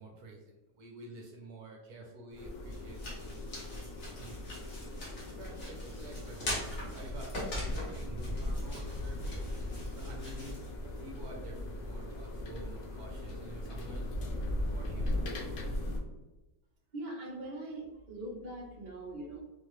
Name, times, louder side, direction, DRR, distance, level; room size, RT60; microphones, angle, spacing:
voice 1, 0.0-3.7 4.2-4.4 5.2-9.4 9.9-14.1 14.4-15.2, right 1 dB, 65° right, 0 dB, 1.2 m, -49 dB
sound 1, 2.3-11.3, left 1 dB, 45° left, 1.5 m, -43 dB
sound 2, 2.4-16.0, left 1 dB, 85° left, 1.4 m, -38 dB
voice 2, 16.9-19.4, right 1 dB, 35° right, -3 dB, 0.8 m, -42 dB
4.2 x 2.8 x 3.1 m, 1.1 s
omnidirectional pair, 1.9 m